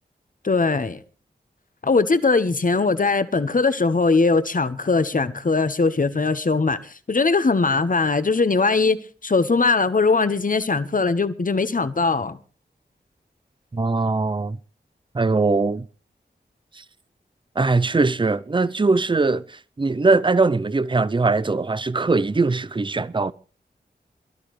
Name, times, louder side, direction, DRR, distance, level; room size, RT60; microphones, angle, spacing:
voice 1, 0.4-1.0 1.8-12.4, left 4 dB, 50° left, 1.2 m, -20 dB
voice 2, 13.7-14.6 15.1-15.9 16.8-16.9 17.6-23.3, right 3 dB, 25° right, 0.6 m, -21 dB
23.0 x 12.5 x 3.2 m
wide cardioid pair, 80°, 18 cm